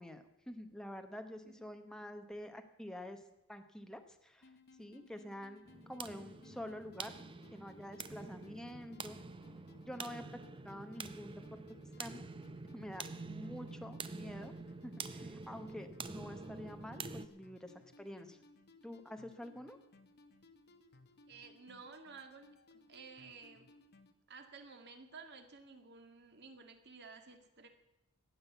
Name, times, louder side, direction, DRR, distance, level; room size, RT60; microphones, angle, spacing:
voice 1, 0.0-3.2 3.5-4.5 4.8-7.1 7.5-9.2 9.8-11.6 12.0-12.2 12.7-14.5 14.8-18.4 18.8-19.8, left 1 dB, 5° left, 6 dB, 0.9 m, -48 dB
sound 1, 4.4-24.1, left 2 dB, 50° left, 1.0 m, -63 dB
sound 2, 5.7-17.3, right 4 dB, 25° right, 0.6 m, -47 dB
voice 2, 21.3-23.7 24.3-27.7, right 4 dB, 50° right, 6 dB, 1.8 m, -54 dB
15.0 x 8.7 x 8.1 m, 0.87 s
head